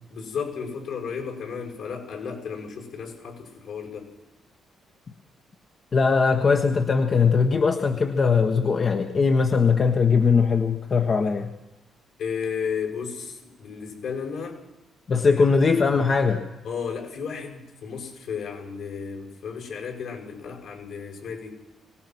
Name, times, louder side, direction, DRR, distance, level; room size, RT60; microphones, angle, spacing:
voice 1, 0.1-4.1 12.2-14.6 15.3-16.0 16.6-21.5, left 6 dB, 75° left, 1 dB, 6.6 m, -34 dB
voice 2, 5.9-11.5 15.1-16.4, left 5 dB, 45° left, 4 dB, 1.3 m, -20 dB
24.0 x 18.0 x 6.2 m, 0.97 s
cardioid pair, 90°, 0 cm